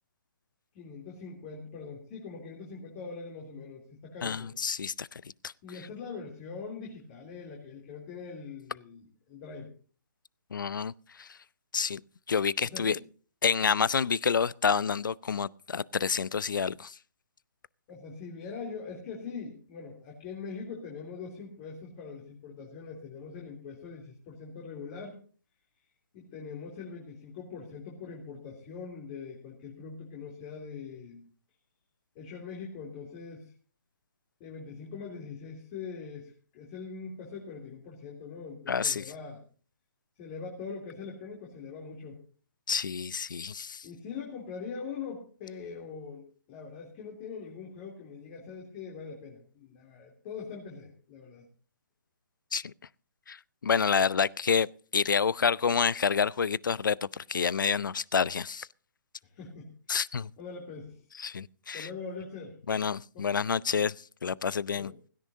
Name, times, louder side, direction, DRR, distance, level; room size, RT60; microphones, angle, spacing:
voice 1, 0.7-4.5 5.6-9.7 12.6-13.0 17.9-25.2 26.1-31.2 32.1-33.5 34.4-39.4 40.2-42.2 43.8-51.4 59.2-59.7 60.4-61.0 61.7-62.6 63.1-63.4 64.7-65.0, left 5 dB, 30° left, 3.2 m, -42 dB
voice 2, 4.2-5.1 10.5-10.9 11.2-11.3 11.7-12.0 12.3-13.0 13.4-16.9 38.7-39.0 42.7-43.9 52.5-52.7 53.3-53.4 53.6-54.7 54.9-57.0 57.3-58.7 59.9-60.3 61.2-61.9 62.7-63.9 64.2-64.9, left 6 dB, 75° left, 0.5 m, -28 dB
16.5 x 16.5 x 2.7 m
figure-of-eight pair, 140°, 11 cm